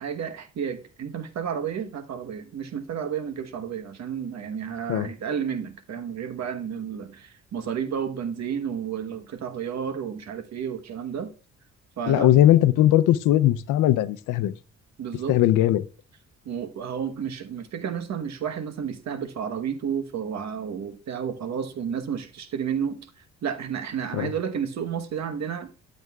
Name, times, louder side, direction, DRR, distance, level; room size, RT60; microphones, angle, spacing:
voice 1, 0.0-11.3 12.0-12.3 15.0-15.4 16.4-23.1 23.4-25.7, right 7 dB, 60° right, 1.2 m, -31 dB
voice 2, 12.1-14.5 15.3-15.8 24.1-24.3, left 13 dB, 90° left, 0.6 m, -19 dB
12.5 x 7.8 x 2.4 m
cardioid pair, 90°, 30 cm